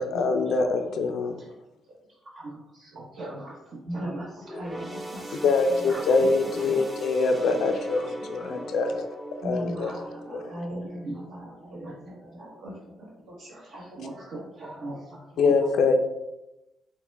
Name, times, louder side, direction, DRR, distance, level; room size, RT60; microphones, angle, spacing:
voice 1, 0.0-1.3 5.4-9.1 9.4-9.9 10.3-10.5 15.4-16.0, left 3 dB, 70° left, 5 dB, 0.4 m, -24 dB
voice 2, 2.2-4.5 5.8-6.1 6.6-6.8 8.0-8.1 8.5-8.6 9.8-10.0 11.8-11.9 12.4-12.5 13.5-16.0, right 2 dB, 55° right, -4 dB, 1.0 m, -40 dB
voice 3, 3.8-4.3 4.6-5.9 6.4-6.8 8.4-8.5 9.4-12.8 13.2-13.5 13.9-14.2, right 1 dB, 75° right, -4 dB, 1.4 m, -38 dB
sound 1, 4.4-12.1 12.5-12.7 13.6-13.7, right 1 dB, 15° right, 0.9 m, -40 dB
5.7 x 2.1 x 3.4 m, 0.94 s
cardioid pair, 95°, 0 cm